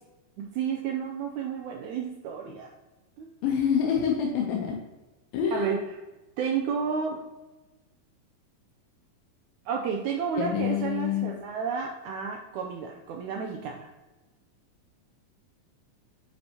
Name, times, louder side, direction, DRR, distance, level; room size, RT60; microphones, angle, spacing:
voice 1, 0.6-2.7 3.2-3.3 5.5-5.8 6.4-7.2 9.7-13.9, right 6 dB, 90° right, 2 dB, 1.7 m, -31 dB
voice 2, 3.4-4.8 5.3-5.7 10.4-11.3, left 8 dB, 85° left, 0 dB, 2.6 m, -26 dB
9.6 x 4.4 x 2.8 m, 1.1 s
omnidirectional pair, 4.0 m